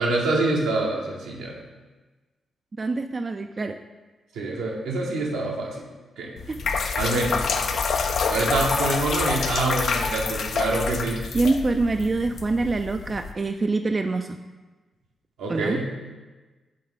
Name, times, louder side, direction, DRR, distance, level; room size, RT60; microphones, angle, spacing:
voice 1, 0.0-1.6 4.3-5.9 6.2-6.3 7.0-7.5 8.3-11.2 15.4-16.1, right 2 dB, 80° right, -2 dB, 0.9 m, -26 dB
voice 2, 2.8-3.8 6.5-6.6 11.3-14.4 15.5-15.8, right 3 dB, 40° right, 6 dB, 0.3 m, -25 dB
sound 1, 6.4-13.3, left 5 dB, 65° left, 0.4 m, -27 dB
6.6 x 3.9 x 3.7 m, 1.2 s
hypercardioid pair, 40°, 0 cm